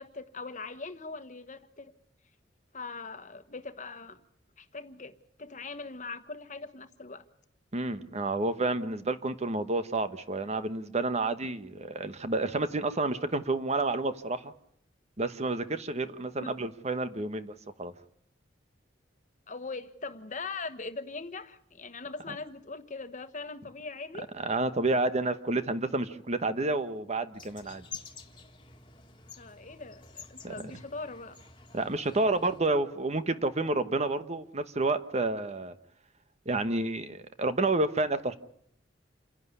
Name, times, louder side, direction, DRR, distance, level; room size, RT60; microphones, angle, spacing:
voice 1, 0.0-1.9 2.7-4.2 4.6-7.2 16.4-16.5 19.5-24.3 29.4-31.4, left 3 dB, 40° left, 10 dB, 1.3 m, -41 dB
voice 2, 7.7-14.5 15.2-17.9 24.4-27.8 30.4-30.5 31.7-35.7 36.5-38.3, right 2 dB, 35° right, 11 dB, 1.1 m, -30 dB
sound 1, 27.3-32.6, left 5 dB, 25° left, 1.9 m, -49 dB
28.0 x 11.0 x 9.7 m, 0.71 s
head